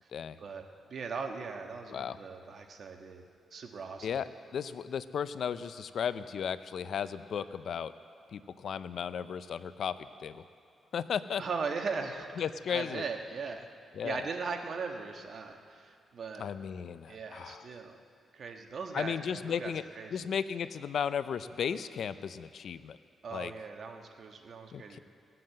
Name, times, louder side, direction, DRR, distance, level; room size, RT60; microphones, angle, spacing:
voice 1, 0.4-3.2 3.5-4.2 11.4-12.3 12.7-13.7 14.0-16.5 17.1-18.0 18.3-20.2 23.2-25.0, right 5 dB, 55° right, 4 dB, 1.4 m, -39 dB
voice 2, 4.0-7.9 8.3-9.9 10.2-10.4 10.9-11.4 12.4-13.0 14.0-14.2 16.4-17.7 18.9-19.8 20.1-23.0 23.3-23.5 24.7-25.0, left 7 dB, 70° left, 13 dB, 0.5 m, -35 dB
19.0 x 7.7 x 7.7 m, 2.3 s
cardioid pair, 85°, 0 cm